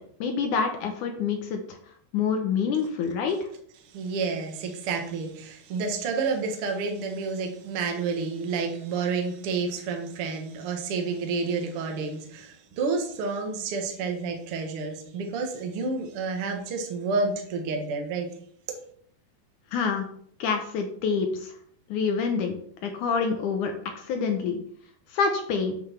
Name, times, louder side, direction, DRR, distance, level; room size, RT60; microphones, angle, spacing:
voice 1, 0.2-1.8 2.1-3.4 19.7-20.1 20.4-21.5 21.9-22.5 22.8-24.6 25.1-25.7, left 5 dB, 70° left, 5 dB, 2.0 m, -27 dB
voice 2, 3.8-18.3, right 4 dB, 50° right, 3 dB, 1.8 m, -30 dB
8.0 x 6.3 x 6.1 m, 0.63 s
omnidirectional pair, 4.5 m